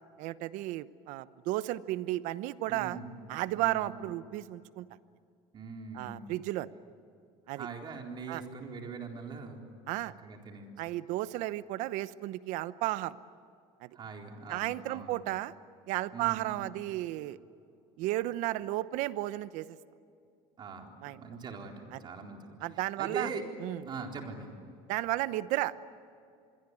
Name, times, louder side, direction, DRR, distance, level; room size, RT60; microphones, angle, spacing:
voice 1, 0.2-3.0 3.3-4.9 5.9-6.7 7.5-7.7 8.3-8.4 9.9-10.1 10.8-13.2 13.8-13.9 14.5-15.5 15.9-17.4 18.0-19.8 21.0-21.2 21.9-22.0 22.6-23.3 23.6-23.9 24.9-25.8, right 16 dB, 70° right, 15 dB, 0.9 m, -33 dB
voice 2, 2.7-3.1 3.6-3.9 5.5-6.3 7.5-9.6 10.2-10.7 13.9-15.2 16.1-16.5 20.6-22.6 23.0-23.4 23.8-24.5, right 5 dB, 35° right, 2 dB, 4.1 m, -41 dB
26.5 x 22.5 x 9.8 m, 2.4 s
cardioid pair, 135°, 13 cm